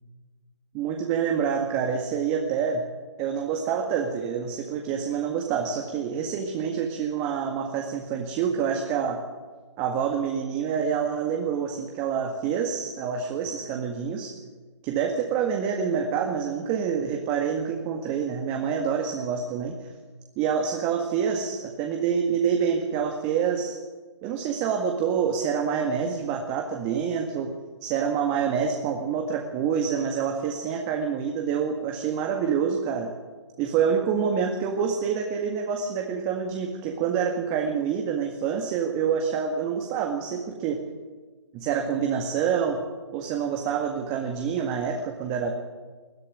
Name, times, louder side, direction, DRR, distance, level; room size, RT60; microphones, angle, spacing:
voice 1, 0.7-2.8 3.2-9.2 9.8-14.3 14.8-19.9 20.4-23.8 24.2-27.5 27.8-33.1 33.6-40.8 41.5-42.8 43.1-45.5, right 7 dB, 25° right, 3 dB, 1.8 m, -27 dB
21.0 x 12.5 x 9.9 m, 1.4 s
figure-of-eight pair, 140°, 15 cm